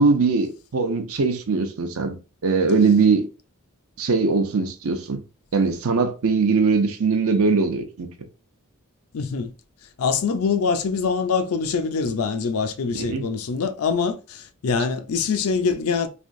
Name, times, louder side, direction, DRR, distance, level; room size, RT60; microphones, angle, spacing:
voice 1, 0.0-2.2 2.4-3.3 4.0-5.2 5.5-8.1 12.9-13.3, right 4 dB, 70° right, 0.6 m, -21 dB
voice 2, 9.1-9.5 10.0-16.1, left 5 dB, 75° left, 0.5 m, -24 dB
3.4 x 2.6 x 2.5 m
head